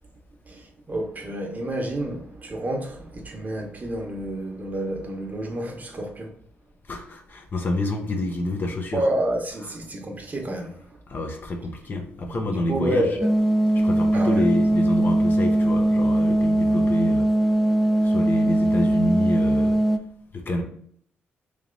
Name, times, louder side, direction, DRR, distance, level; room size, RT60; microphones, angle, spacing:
voice 1, 0.5-6.3 8.9-11.0 12.2-13.3 14.1-14.4, right 1 dB, 35° right, 0.9 m, -29 dB
voice 2, 6.9-9.0 11.1-13.1 13.7-17.3 18.0-19.8 20.3-20.6, left 1 dB, 45° left, 0.8 m, -28 dB
sound 1, 13.2-20.0, right 1 dB, 5° left, 0.4 m, -20 dB
3.2 x 2.9 x 3.8 m
cardioid pair, 70°, 5 cm